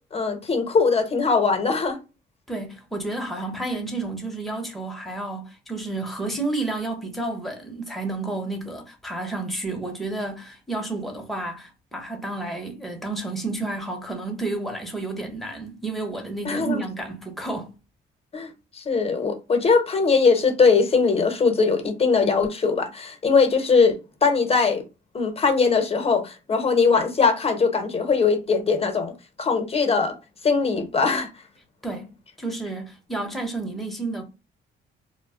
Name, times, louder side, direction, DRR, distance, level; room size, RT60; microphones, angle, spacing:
voice 1, 0.1-2.0 16.4-16.8 18.3-18.5 18.8-24.8 25.1-29.1 29.4-30.1 30.4-31.3, left 4 dB, 30° left, 0.8 m, -21 dB
voice 2, 2.5-17.7 31.8-34.2, right 2 dB, ahead, 0.8 m, -31 dB
2.1 x 2.0 x 3.6 m
cardioid pair, 90°, 20 cm